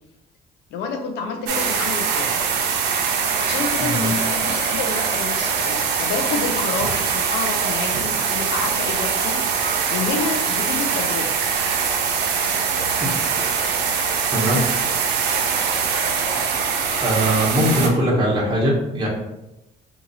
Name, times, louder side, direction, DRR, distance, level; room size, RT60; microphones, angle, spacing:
voice 1, 0.7-2.3 3.4-11.4, left 4 dB, 75° left, 4 dB, 0.6 m, -29 dB
sound 1, 1.5-17.9, right 6 dB, 80° right, 0.6 m, -22 dB
voice 2, 17.0-19.1, equal, 25° right, -4 dB, 0.9 m, -20 dB
2.8 x 2.6 x 4.0 m, 0.93 s
cardioid pair, 110°, 17 cm